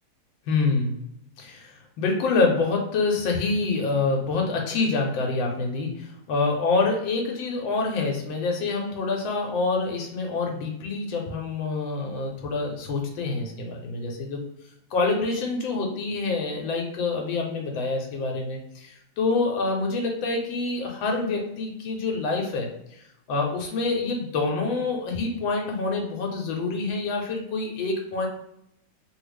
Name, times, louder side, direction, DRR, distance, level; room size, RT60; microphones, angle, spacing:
voice 1, 0.5-0.9 1.4-14.4 14.9-28.3, left 3 dB, 80° left, 1 dB, 1.4 m, -26 dB
3.2 x 2.3 x 3.1 m, 0.77 s
omnidirectional pair, 2.1 m